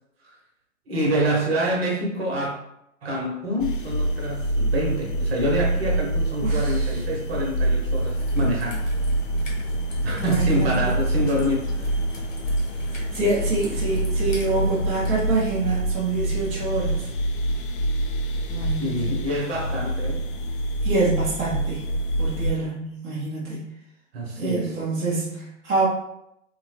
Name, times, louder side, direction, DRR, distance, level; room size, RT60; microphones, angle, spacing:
voice 1, 0.9-2.6 3.0-8.9 10.0-11.9 18.8-20.2 24.1-24.8, equal, 50° right, -1 dB, 1.1 m, -26 dB
sound 1, 3.6-22.5, right 1 dB, 45° left, 0.5 m, -26 dB
voice 2, 6.4-6.9 10.2-10.9 12.9-17.1 18.5-19.1 20.8-21.9 22.2-23.7 24.4-25.9, right 3 dB, 15° right, -6 dB, 0.8 m, -26 dB
Raindrop / Trickle dribble, 7.9-15.1, left 1 dB, 90° left, 1.1 m, -42 dB
3.6 x 2.2 x 3.1 m, 0.80 s
figure-of-eight pair, 120°, 38 cm